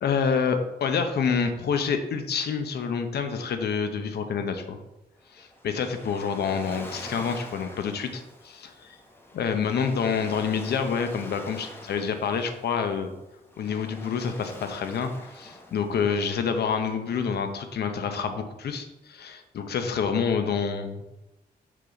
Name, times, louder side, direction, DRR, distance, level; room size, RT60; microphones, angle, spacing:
voice 1, 0.0-4.8 5.3-9.0 9.3-13.1 13.6-21.0, left 6 dB, 85° left, 7 dB, 0.8 m, -28 dB
Waves surf, 5.2-17.6, left 1 dB, 15° left, 1.1 m, -45 dB
6.1 x 4.0 x 5.8 m, 0.99 s
wide cardioid pair, 140°, 16 cm